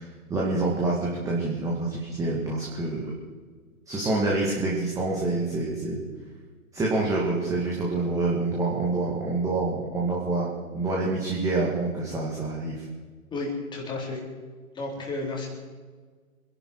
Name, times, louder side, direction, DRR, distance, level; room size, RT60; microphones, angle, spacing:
voice 1, 0.0-3.1 3.9-6.0 6.7-12.8, right 2 dB, 5° right, -4 dB, 2.2 m, -27 dB
voice 2, 13.3-14.2 14.7-15.5, left 2 dB, 10° left, -2 dB, 3.8 m, -32 dB
26.5 x 11.5 x 4.8 m, 1.5 s
hypercardioid pair, 140°, 43 cm